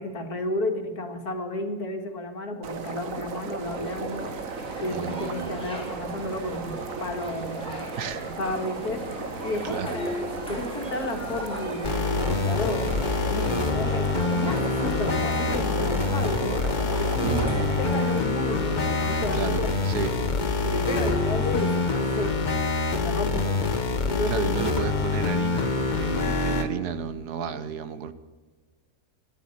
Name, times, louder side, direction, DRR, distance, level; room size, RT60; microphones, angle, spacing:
voice 1, 0.0-4.3 4.8-9.0 9.4-12.9 13.3-16.6 16.9-19.7 20.6-22.4 22.9-23.7 24.0-24.5, left 2 dB, 75° left, 4 dB, 2.3 m, -32 dB
sound 1, 2.6-18.2, right 5 dB, 60° right, 1.4 m, -35 dB
sound 2, 3.7-22.2, left 1 dB, 5° left, 4.4 m, -39 dB
voice 2, 4.9-5.5 8.0-8.2 9.6-9.9 17.2-17.8 19.1-20.1 24.3-28.1, right 7 dB, 85° right, 12 dB, 1.5 m, -32 dB
sound 3, 11.8-26.7, left 3 dB, 35° left, 1.1 m, -26 dB
14.0 x 10.5 x 9.6 m, 1.3 s
omnidirectional pair, 1.6 m